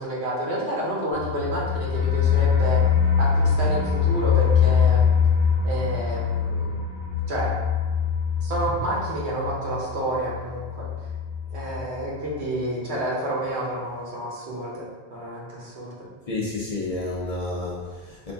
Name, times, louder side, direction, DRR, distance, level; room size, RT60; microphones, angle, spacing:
voice 1, 0.0-2.8 3.2-5.0 5.6-6.8 7.3-7.5 8.4-10.9 11.5-14.9 15.1-16.1, right 1 dB, 85° right, -4 dB, 1.2 m, -29 dB
sound 1, 1.1-11.8 12.1-12.2 12.6-12.7, left 7 dB, 65° left, 1.1 m, -23 dB
voice 2, 16.3-18.3, left 2 dB, 45° left, -5 dB, 0.5 m, -30 dB
3.7 x 2.6 x 3.4 m, 1.3 s
omnidirectional pair, 1.1 m